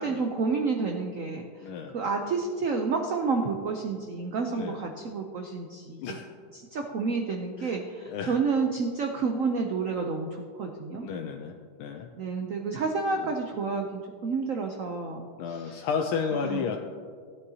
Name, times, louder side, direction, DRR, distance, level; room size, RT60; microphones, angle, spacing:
voice 1, 0.0-6.2 6.5-11.1 12.2-15.9 16.3-16.7, right 4 dB, 85° right, 3 dB, 0.7 m, -30 dB
voice 2, 1.6-1.9 4.5-4.8 6.0-6.3 7.6-7.7 8.1-8.4 11.0-11.5 11.8-12.1 15.4-16.8, left 6 dB, 80° left, 3 dB, 1.5 m, -32 dB
16.5 x 9.5 x 2.8 m, 2.1 s
omnidirectional pair, 2.3 m